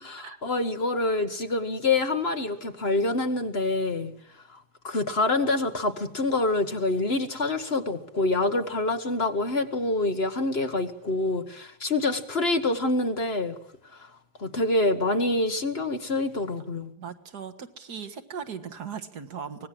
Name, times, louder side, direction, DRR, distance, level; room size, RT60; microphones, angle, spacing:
voice 1, 0.0-4.1 4.5-13.5 13.9-14.1 14.4-16.9, left 2 dB, 40° left, 7 dB, 1.5 m, -26 dB
voice 2, 17.0-19.7, right 7 dB, 75° right, 9 dB, 2.1 m, -38 dB
24.5 x 19.0 x 7.6 m, 0.69 s
omnidirectional pair, 1.7 m